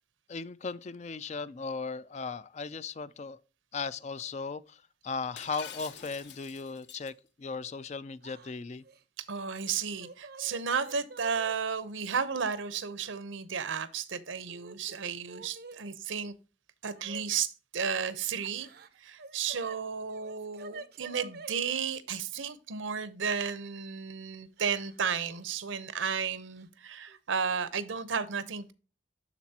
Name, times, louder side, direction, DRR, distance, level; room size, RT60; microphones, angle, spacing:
voice 1, 0.3-3.4 3.7-8.8, left 4 dB, 35° left, 0.3 m, -37 dB
Shatter, 5.4-7.1, left 8 dB, 60° left, 1.0 m, -46 dB
Yell / Crying sobbing, 8.2-8.5 8.8-9.0 9.8-11.5 12.5-12.6 13.6-14.2 14.5-15.8 17.0-17.2 18.4-19.8 20.1-21.6 23.2-23.3 24.6-25.0 25.3-25.4 26.6-26.7 27.1-27.4, right 3 dB, 50° right, 0.5 m, -48 dB
voice 2, 9.2-16.4 16.8-18.7 19.0-28.7, right 6 dB, 75° right, 0.8 m, -33 dB
12.0 x 4.0 x 2.8 m
head